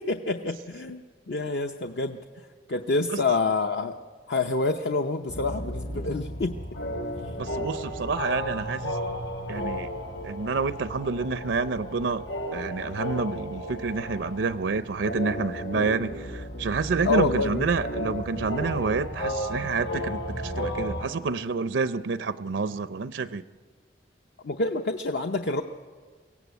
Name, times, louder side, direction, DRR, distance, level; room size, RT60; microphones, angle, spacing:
voice 1, 0.0-2.2 2.7-3.9 4.3-6.6 17.0-17.6 24.4-25.6, left 3 dB, 65° left, 5 dB, 0.7 m, -27 dB
voice 2, 3.1-3.4 6.0-6.2 7.4-9.0 9.5-9.9 10.2-12.2 12.5-23.4, right 4 dB, 80° right, 13 dB, 0.5 m, -28 dB
sound 1, 5.3-21.0, equal, 80° left, 4.1 m, -34 dB
23.0 x 16.5 x 8.2 m, 1.5 s
head